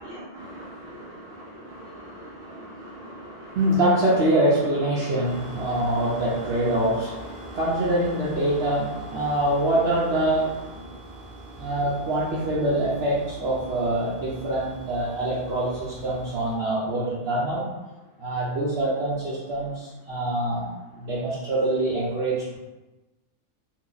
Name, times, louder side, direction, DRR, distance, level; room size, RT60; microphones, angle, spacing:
voice 1, 0.0-11.2 11.6-17.7 18.2-22.6, right 1 dB, 60° right, -8 dB, 0.8 m, -25 dB
sound 1, 5.2-16.6, right 2 dB, 80° right, 0.3 m, -43 dB
2.8 x 2.3 x 3.7 m, 1.1 s
omnidirectional pair, 1.4 m